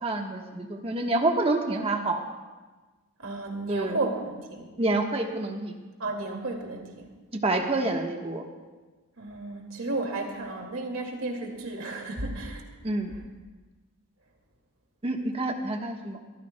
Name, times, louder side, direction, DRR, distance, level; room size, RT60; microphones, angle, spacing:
voice 1, 0.0-2.2 3.7-4.0 4.8-5.8 7.4-8.4 12.8-13.1 15.0-16.2, right 2 dB, 25° right, 2 dB, 1.2 m, -27 dB
voice 2, 3.2-4.7 6.0-7.1 9.2-12.6, right 2 dB, 70° right, 2 dB, 2.2 m, -33 dB
23.5 x 14.0 x 2.2 m, 1.3 s
head